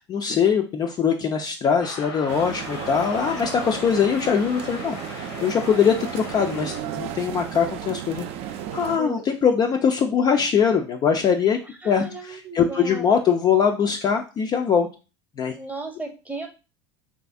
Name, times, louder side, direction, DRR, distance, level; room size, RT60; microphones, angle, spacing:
voice 1, 0.0-8.3 8.7-11.6 11.8-14.9 15.4-15.5, left 7 dB, 30° left, 4 dB, 0.3 m, -22 dB
sound 1, 1.8-6.8, left 4 dB, 75° left, 0.7 m, -37 dB
sound 2, 2.3-9.0, right 10 dB, 45° right, 0.4 m, -34 dB
voice 2, 5.4-5.8 9.0-9.2 11.8-13.2 15.5-16.5, right 2 dB, 10° right, 4 dB, 0.7 m, -35 dB
3.2 x 2.5 x 2.4 m, 0.32 s
figure-of-eight pair, 75°, 14 cm